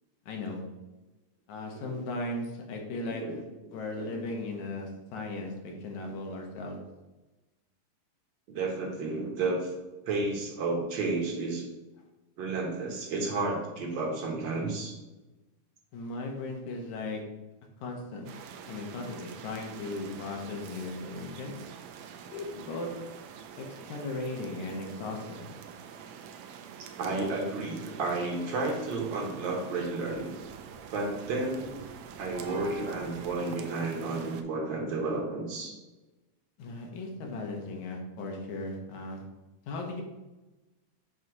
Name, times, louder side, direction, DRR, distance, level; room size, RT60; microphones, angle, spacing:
voice 1, 0.3-0.6 1.5-3.4 3.7-6.8 15.9-17.2 17.8-18.3 18.7-21.5 22.3-22.9 23.6-25.5 36.6-39.2 39.7-40.0, left 2 dB, 75° left, 2 dB, 2.3 m, -37 dB
voice 2, 3.0-3.4 4.0-4.3 8.5-9.7 10.1-11.6 12.4-14.9 27.0-30.3 30.9-31.7 32.2-35.7, right 3 dB, 55° right, -1 dB, 1.4 m, -32 dB
sound 1, 18.3-34.4, right 7 dB, 90° right, 2.1 m, -46 dB
7.5 x 2.9 x 4.6 m, 1.1 s
omnidirectional pair, 3.4 m